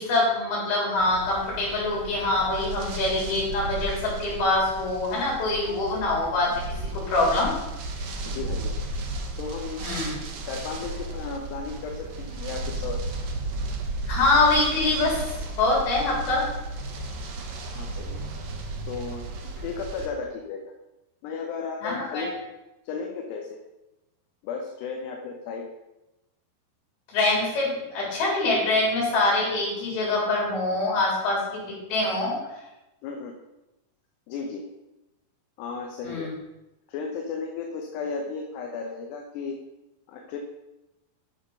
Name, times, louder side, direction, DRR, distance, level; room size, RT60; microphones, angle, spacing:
voice 1, 0.0-6.6 6.9-7.5 9.8-10.1 14.1-15.2 15.6-16.5 21.8-22.3 27.1-32.4 36.0-36.3, left 2 dB, 65° left, -4 dB, 5.3 m, -24 dB
sound 1, 1.0-20.1, right 2 dB, 80° right, 1.5 m, -34 dB
voice 2, 8.3-8.8 9.4-10.0 10.5-13.0 17.7-18.2 18.9-20.6 21.2-22.4 22.8-23.6 24.4-25.7 33.0-33.4 34.3-34.7 35.6-36.3 36.9-39.6 40.1-40.4, left 5 dB, 80° left, 2 dB, 3.0 m, -34 dB
9.4 x 6.6 x 5.5 m, 0.98 s
omnidirectional pair, 4.8 m